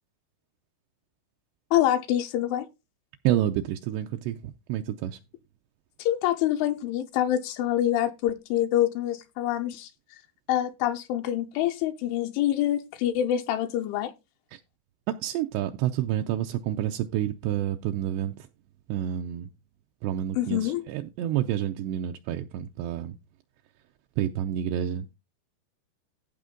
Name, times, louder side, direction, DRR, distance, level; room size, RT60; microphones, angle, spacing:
voice 1, 1.7-2.7 6.0-9.9 10.5-14.1 20.4-20.8, left 12 dB, 85° left, 3.1 m, -26 dB
voice 2, 3.2-5.2 14.5-14.6 15.1-18.5 18.9-19.5 20.0-23.2 24.2-25.1, right 11 dB, 90° right, 2.4 m, -29 dB
15.0 x 5.1 x 3.7 m
omnidirectional pair, 5.6 m